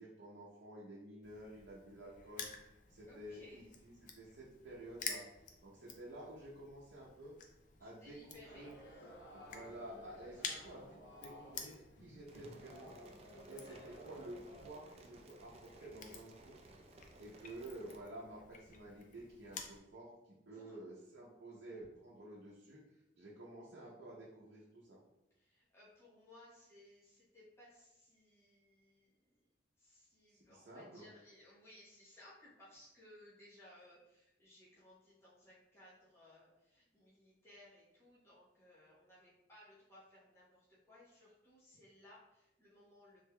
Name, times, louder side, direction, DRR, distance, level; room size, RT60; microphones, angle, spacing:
voice 1, 0.0-2.5 2.9-5.2 5.6-7.4 7.8-8.7 9.0-9.1 9.3-13.0 13.5-16.5 17.2-22.8 23.2-25.0 30.3-31.1, right 1 dB, 75° right, -6 dB, 0.7 m, -51 dB
Crushing, 1.2-19.8, left 6 dB, 45° left, 0.4 m, -52 dB
voice 2, 3.0-3.7 7.8-8.7 9.0-9.1 10.2-10.6 13.3-13.6 20.5-20.8 25.3-29.4 29.8-43.2, left 1 dB, 15° left, -9 dB, 0.9 m, -61 dB
sound 1, 8.4-14.7, equal, 75° left, 0.7 m, -56 dB
sound 2, 12.3-18.0, right 2 dB, 35° right, 0.3 m, -60 dB
3.4 x 3.3 x 2.2 m, 0.92 s
head